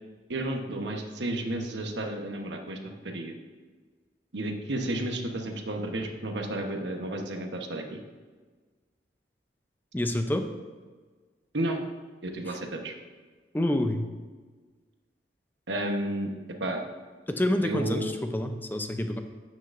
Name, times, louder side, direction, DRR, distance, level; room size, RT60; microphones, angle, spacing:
voice 1, 0.3-2.8 3.0-3.3 4.3-8.0 11.5-11.8 12.2-12.9 15.7-16.3 16.6-16.8 17.6-18.1, right 1 dB, 80° right, 3 dB, 1.1 m, -32 dB
voice 2, 9.9-10.5 12.5-12.6 13.5-14.0 17.3-19.2, left 1 dB, 10° left, 6 dB, 0.5 m, -28 dB
9.7 x 8.6 x 2.6 m, 1.4 s
head